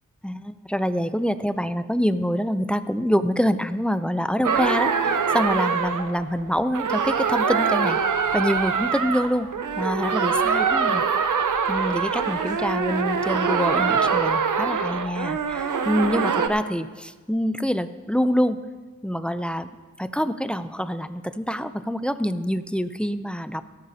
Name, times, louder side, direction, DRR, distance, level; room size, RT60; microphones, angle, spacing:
voice 1, 0.2-8.0 8.3-9.5 9.8-11.3 11.7-18.6 19.0-19.7 20.0-23.7, equal, 5° left, 12 dB, 0.4 m, -26 dB
sound 1, 4.4-16.5, right 6 dB, 90° right, 0.8 m, -24 dB
18.0 x 13.0 x 2.8 m, 1.3 s
wide cardioid pair, 90°, 30 cm